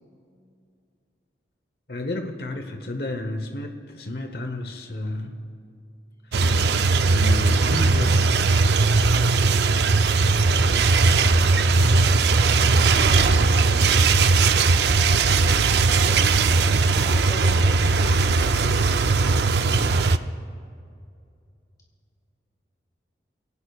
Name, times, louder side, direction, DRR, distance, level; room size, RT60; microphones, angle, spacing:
voice 1, 1.9-5.4 7.0-8.3 19.6-20.0, left 1 dB, 60° left, 5 dB, 1.0 m, -31 dB
sound 1, 6.3-20.2, right 3 dB, 70° right, 0.5 m, -19 dB
voice 2, 10.2-13.6 14.6-18.8 19.3-20.3, equal, 20° left, -4 dB, 3.6 m, -43 dB
25.0 x 18.0 x 2.4 m, 2.4 s
head